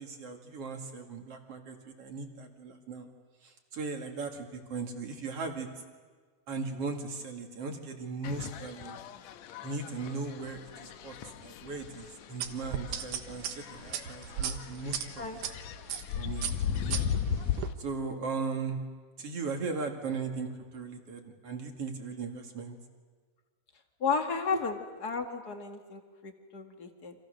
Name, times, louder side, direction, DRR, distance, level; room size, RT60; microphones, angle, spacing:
voice 1, 0.0-3.1 3.4-5.7 6.5-9.0 9.6-15.3 16.2-17.0 17.8-18.8 19.2-22.8 24.5-24.6, right 4 dB, 45° right, 4 dB, 2.8 m, -38 dB
sound 1, 8.2-17.7, left 8 dB, 70° left, 1.8 m, -37 dB
sound 2, 12.4-15.5 15.9-16.1 16.4-17.7, right 9 dB, 70° right, 2.6 m, -35 dB
voice 2, 24.0-24.8 25.0-27.1, left 5 dB, 35° left, 5 dB, 1.8 m, -33 dB
30.0 x 26.5 x 6.5 m, 1.5 s
omnidirectional pair, 4.0 m